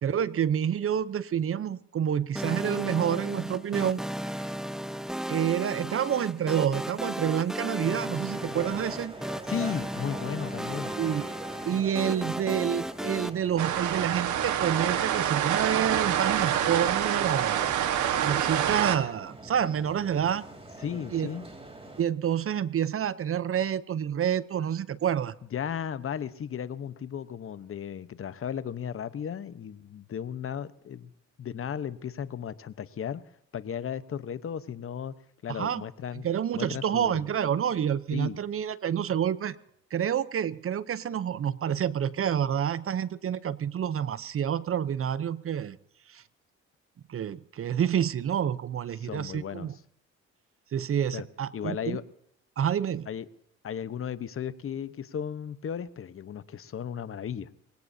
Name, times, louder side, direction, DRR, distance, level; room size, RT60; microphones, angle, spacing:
voice 1, 0.0-4.5 5.3-9.1 11.0-11.4 11.6-20.4 21.1-21.3 22.0-25.3 35.5-35.8 36.2-39.6 39.9-45.8 46.1-46.2 47.1-49.7 50.7-52.0 52.6-53.1, right 9 dB, 45° right, 16 dB, 0.7 m, -28 dB
sound 1, 2.3-13.3, equal, ahead, 0.7 m, -35 dB
sound 2, 8.3-22.0, right 2 dB, 20° right, 3.2 m, -44 dB
voice 2, 9.5-10.9 20.8-21.5 25.5-31.1 31.4-33.2 33.5-35.2 35.4-36.3 36.5-37.3 38.1-38.4 49.0-49.7 51.1-51.2 51.5-52.0 53.1-53.3 53.6-57.5, left 8 dB, 45° left, 14 dB, 1.0 m, -35 dB
sound 3, 13.6-19.0, right 10 dB, 75° right, 1.4 m, -26 dB
23.0 x 17.5 x 2.7 m, 0.73 s
cardioid pair, 90°, 30 cm